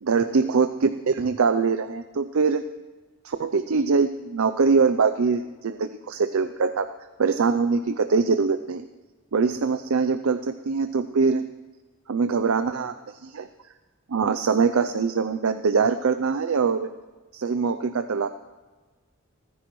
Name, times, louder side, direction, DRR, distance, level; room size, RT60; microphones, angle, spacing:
voice 1, 0.0-2.6 3.2-6.9 7.2-8.8 9.3-11.4 12.1-12.9 13.2-13.5 14.1-16.9 17.3-18.3, right 5 dB, 85° right, 10 dB, 0.5 m, -23 dB
30.0 x 10.0 x 3.1 m, 1.3 s
head